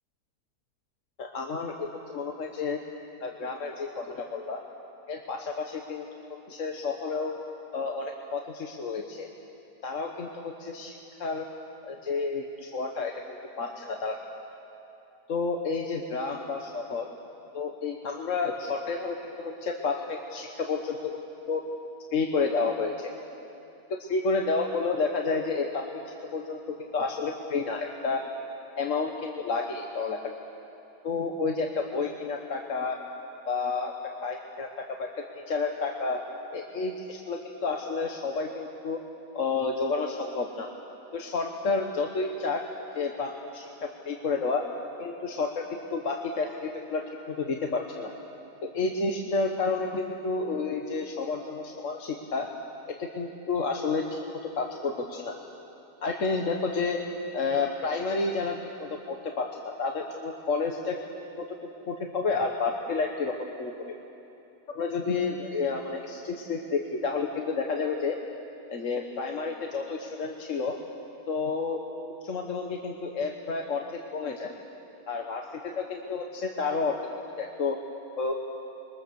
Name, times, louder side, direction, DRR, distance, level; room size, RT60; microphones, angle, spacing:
voice 1, 1.2-2.8 3.2-4.6 5.1-6.1 6.5-7.3 7.7-9.3 9.8-11.4 11.8-14.2 15.3-17.1 17.5-21.2 21.5-21.6 22.1-23.1 24.1-26.0 26.3-28.2 28.8-30.3 31.0-33.0 33.5-33.9 34.2-36.2 36.5-39.0 39.3-40.7 41.1-42.6 42.9-44.6 45.0-48.1 48.6-52.5 52.9-54.2 54.5-55.3 56.0-57.0 57.3-61.0 61.4-61.6 61.9-63.9 64.7-68.2 68.7-70.8 71.3-71.8 72.2-74.5 75.1-77.0 77.4-77.8 78.2-78.3, left 4 dB, 50° left, 2 dB, 1.5 m, -30 dB
26.0 x 22.5 x 7.0 m, 2.9 s
omnidirectional pair, 1.7 m